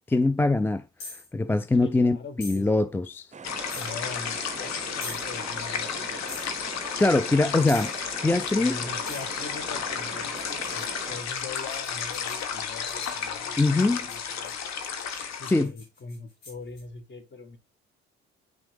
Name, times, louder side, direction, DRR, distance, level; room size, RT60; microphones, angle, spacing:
voice 1, 0.1-0.9 1.1-3.3 7.0-7.9 8.2-8.8 13.6-14.1 15.2-15.7, left 2 dB, 5° left, 0.4 m, -23 dB
sound 1, 1.0-1.3 2.4-2.6 3.7-3.9 5.0-5.2 6.3-6.5 7.7-8.0 9.0-9.3 10.3-13.2 13.8-16.8, left 3 dB, 80° left, 4.3 m, -43 dB
voice 2, 1.8-2.7 3.7-6.4 8.6-14.5 15.3-17.6, left 4 dB, 35° left, 1.7 m, -42 dB
sound 2, 3.3-11.2, right 5 dB, 25° right, 0.7 m, -42 dB
sound 3, 3.4-15.6, left 7 dB, 60° left, 1.3 m, -33 dB
8.9 x 5.9 x 3.4 m
hypercardioid pair, 50°, 31 cm